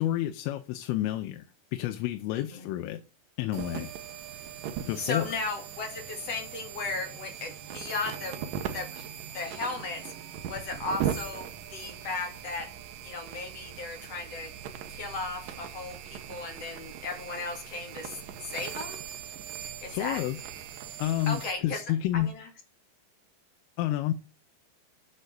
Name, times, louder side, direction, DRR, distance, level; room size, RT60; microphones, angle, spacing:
voice 1, 0.0-1.5 1.7-3.0 3.4-3.9 4.9-5.3 19.9-20.4 21.0-22.3 23.8-24.1, left 13 dB, 90° left, 3.3 m, -29 dB
voice 2, 2.3-2.7 5.0-8.4 8.7-9.1 9.3-10.1 10.5-12.7 13.0-14.5 14.9-19.0 19.8-20.2 21.3-21.8 22.1-22.5, left 3 dB, 40° left, 2.5 m, -36 dB
sound 1, 3.5-21.5, right 9 dB, 80° right, 1.9 m, -39 dB
8.2 x 7.7 x 6.8 m
omnidirectional pair, 5.6 m